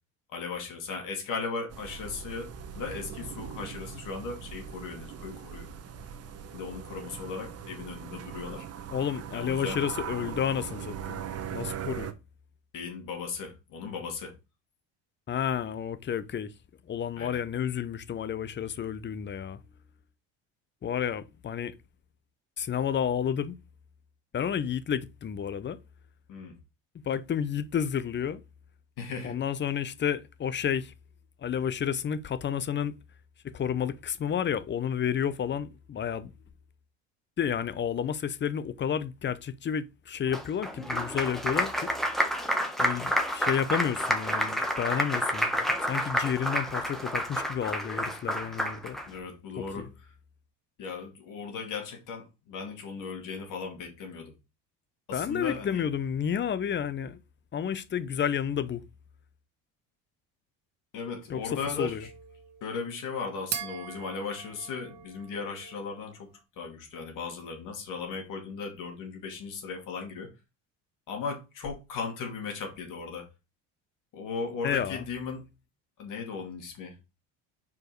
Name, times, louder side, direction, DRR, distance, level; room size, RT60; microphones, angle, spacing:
voice 1, 0.3-5.7 6.5-8.7 9.3-9.8 12.7-14.3 17.2-17.4 26.3-26.6 29.0-29.4 49.1-50.1 50.8-54.3 55.1-55.8 60.9-62.1 62.6-66.3 66.6-70.3 71.1-73.3 74.1-75.5 76.0-77.0, left 5 dB, 60° left, 2.7 m, -37 dB
sound 1, 1.7-12.1, right 8 dB, 45° right, 1.0 m, -40 dB
voice 2, 8.9-11.2 11.5-12.1 15.3-16.5 16.9-19.6 20.8-21.7 22.6-23.6 24.3-25.8 27.1-28.4 29.2-30.9 31.4-32.9 33.4-36.3 37.4-41.9 42.8-45.6 45.8-49.0 49.8-49.9 55.1-57.2 57.5-58.8 61.3-61.4 61.8-62.0 74.6-75.0, left 8 dB, 30° left, 0.7 m, -31 dB
Applause, 40.3-49.1, equal, ahead, 1.3 m, -29 dB
sound 2, 61.3-66.1, right 10 dB, 70° right, 1.3 m, -42 dB
4.8 x 4.8 x 4.7 m
supercardioid pair, 90°, 36 cm